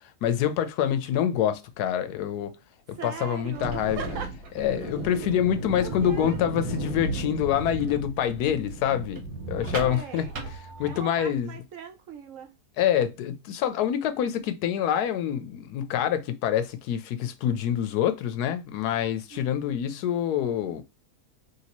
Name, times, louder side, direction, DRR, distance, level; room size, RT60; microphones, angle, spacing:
voice 1, 0.2-2.6 2.9-4.0 4.6-10.3 10.8-11.5 12.8-20.8, left 10 dB, 85° left, 1.1 m, -26 dB
voice 2, 3.0-4.5 5.7-6.4 9.7-10.3 10.9-12.5 19.3-19.8, right 7 dB, 65° right, 0.9 m, -39 dB
sound 1, 3.4-11.3, right 2 dB, 85° right, 1.5 m, -35 dB
3.1 x 2.8 x 2.9 m
omnidirectional pair, 1.6 m